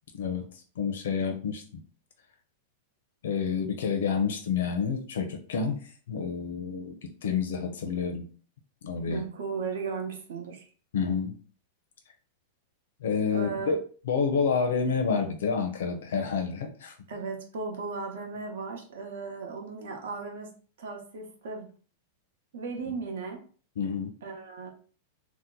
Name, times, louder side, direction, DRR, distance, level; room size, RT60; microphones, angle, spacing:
voice 1, 0.8-1.6 3.2-6.9 7.2-8.3 8.8-9.2 10.9-11.4 13.0-13.8 14.1-16.9 23.8-24.1, left 6 dB, 75° left, 4 dB, 0.5 m, -29 dB
voice 2, 9.1-10.7 13.3-13.7 17.1-20.5 20.8-21.7 22.5-23.4 24.2-24.7, right 4 dB, 70° right, 2 dB, 0.9 m, -36 dB
2.8 x 2.1 x 3.7 m, 0.42 s
supercardioid pair, 175°, 0 cm